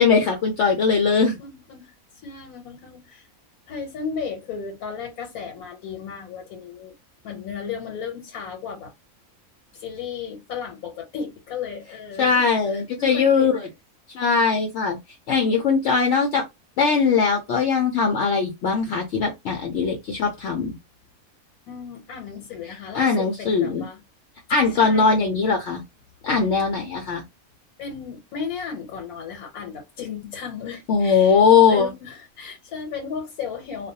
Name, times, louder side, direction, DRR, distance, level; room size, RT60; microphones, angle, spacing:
voice 1, 0.0-1.4 12.2-13.7 14.1-15.0 15.3-16.5 16.8-20.7 22.9-23.9 24.5-25.8 26.2-27.2 30.9-31.9, left 5 dB, 65° left, 0.8 m, -20 dB
voice 2, 1.4-3.3 3.7-6.9 7.2-8.9 9.7-13.5 21.7-24.0 24.7-25.3 27.8-31.4 31.7-33.9, left 6 dB, 85° left, 1.2 m, -35 dB
2.4 x 2.2 x 2.6 m
omnidirectional pair, 1.5 m